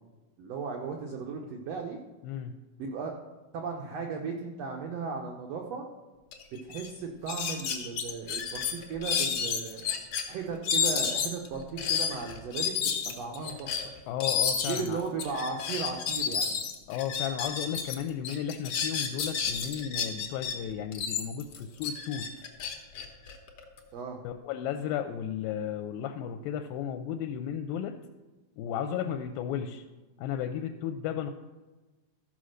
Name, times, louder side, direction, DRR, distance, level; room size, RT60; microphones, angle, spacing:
voice 1, 0.4-2.0 2.8-3.1 3.5-5.9 6.7-9.8 10.3-12.8 13.1-13.7 14.7-16.5 23.9-24.2 28.9-29.1, right 5 dB, 80° right, 2 dB, 1.4 m, -36 dB
voice 2, 2.2-2.6 14.1-15.0 16.9-22.3 24.2-28.0 28.6-29.8 30.2-31.3, left 9 dB, 80° left, 6 dB, 2.3 m, -34 dB
sound 1, 6.3-6.4 6.7-6.9 7.3-10.2 10.6-18.0 18.2-20.5 20.9-23.8, left 7 dB, 65° left, 1.5 m, -31 dB
14.0 x 5.2 x 6.4 m, 1.2 s
omnidirectional pair, 4.2 m